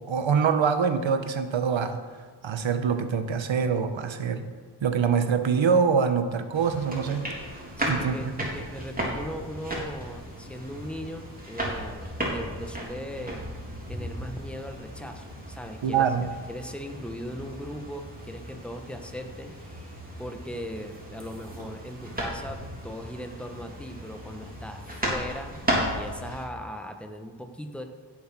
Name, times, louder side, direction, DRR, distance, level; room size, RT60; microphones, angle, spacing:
voice 1, 0.1-2.0 2.4-4.4 4.8-7.2 7.9-8.2 15.8-16.3, right 6 dB, 75° right, 9 dB, 1.2 m, -24 dB
sound 1, 6.5-26.4, equal, 20° right, 3.5 m, -35 dB
voice 2, 7.8-27.8, equal, ahead, 5 dB, 1.2 m, -39 dB
15.5 x 7.2 x 6.1 m, 1.5 s
wide cardioid pair, 95°, 46 cm